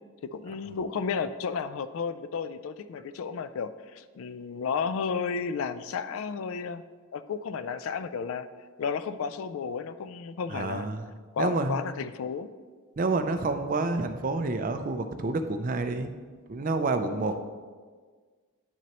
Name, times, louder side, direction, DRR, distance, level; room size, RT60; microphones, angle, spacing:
voice 1, 0.2-6.8 7.1-8.5 8.8-10.9 11.3-12.5, left 5 dB, 65° left, 13 dB, 0.3 m, -32 dB
voice 2, 10.5-11.0 11.4-11.8 13.0-16.1 16.5-17.5, right 3 dB, 40° right, 8 dB, 0.4 m, -28 dB
9.4 x 6.1 x 2.9 m, 1.5 s
head